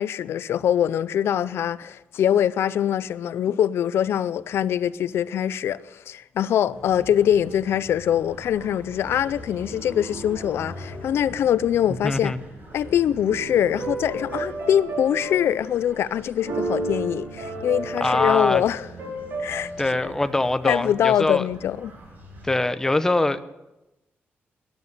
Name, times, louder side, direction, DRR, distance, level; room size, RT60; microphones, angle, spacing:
voice 1, 0.0-12.3 12.7-18.9 19.4-19.7 20.0-20.1 20.6-21.9, left 10 dB, 85° left, 0.4 m, -23 dB
sound 1, 6.7-22.5, right 1 dB, 50° right, 4.0 m, -43 dB
voice 2, 12.0-12.4 18.0-18.6 19.8-21.5 22.4-23.4, left 2 dB, 10° left, 0.7 m, -23 dB
sound 2, 13.2-15.9 16.3-19.6, right 2 dB, 80° right, 5.4 m, -32 dB
13.5 x 11.0 x 6.6 m
wide cardioid pair, 125°, 4 cm